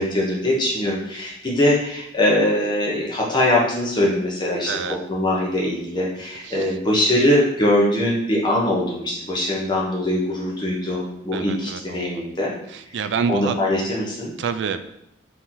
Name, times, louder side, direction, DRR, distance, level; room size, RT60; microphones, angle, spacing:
voice 1, 0.0-12.5 13.3-14.3, left 1 dB, 25° left, -4 dB, 0.9 m, -22 dB
voice 2, 4.7-5.0 6.4-6.7 11.3-12.2 12.7-13.6 14.4-14.8, right 6 dB, 70° right, 10 dB, 0.3 m, -27 dB
4.3 x 3.0 x 3.7 m, 0.78 s
head